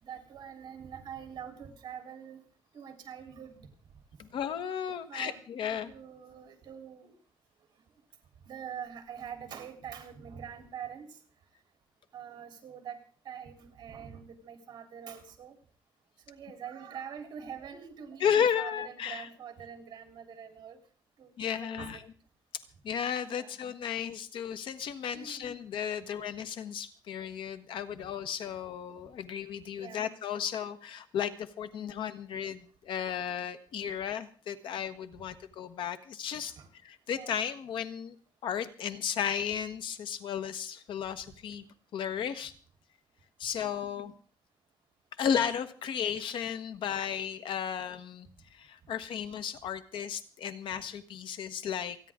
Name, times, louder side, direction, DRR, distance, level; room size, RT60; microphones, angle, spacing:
voice 1, 0.0-2.4 2.7-3.6 5.1-7.1 8.5-11.1 12.1-13.0 13.3-15.5 16.3-20.8 21.2-22.0 23.3-23.5 25.1-25.5 29.8-30.1 36.6-36.7 37.2-37.3 43.6-44.1, right 8 dB, 60° right, 5 dB, 3.6 m, -44 dB
voice 2, 4.2-5.9 18.2-19.3 21.4-22.0 22.8-36.6 36.8-38.1 38.4-41.6 41.9-42.5 43.4-44.1 45.2-52.1, left 8 dB, 90° left, 11 dB, 1.3 m, -34 dB
28.0 x 10.0 x 3.7 m, 0.43 s
wide cardioid pair, 170°, 8 cm